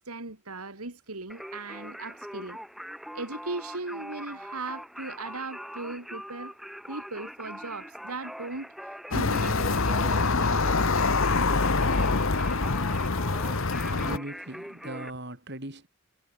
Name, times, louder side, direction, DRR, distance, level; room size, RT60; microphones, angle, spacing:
voice 1, 0.0-2.6 3.1-6.6 6.9-10.0 10.4-10.6, right 3 dB, 80° right, 2.6 m, -38 dB
Singing, 1.3-15.1, equal, ahead, 2.6 m, -42 dB
sound 1, 9.1-14.2, left 3 dB, 65° left, 1.2 m, -25 dB
voice 2, 13.4-15.9, right 1 dB, 50° right, 4.2 m, -40 dB
head